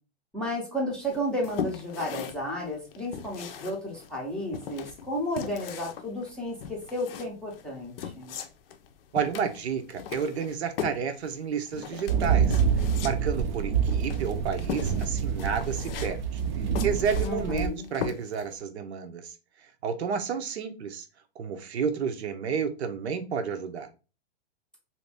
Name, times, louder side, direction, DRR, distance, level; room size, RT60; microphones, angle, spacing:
voice 1, 0.3-8.3 17.2-17.9, equal, 5° left, -4 dB, 0.5 m, -32 dB
sound 1, 1.1-18.6, left 8 dB, 65° left, 0.5 m, -39 dB
voice 2, 9.1-12.6 13.0-16.4 16.8-19.3 19.8-21.1 21.4-23.9, right 6 dB, 90° right, 7 dB, 0.7 m, -31 dB
sound 2, 12.1-17.7, right 7 dB, 45° right, 0.5 m, -27 dB
2.7 x 2.5 x 3.3 m, 0.32 s
hypercardioid pair, 150°, 32 cm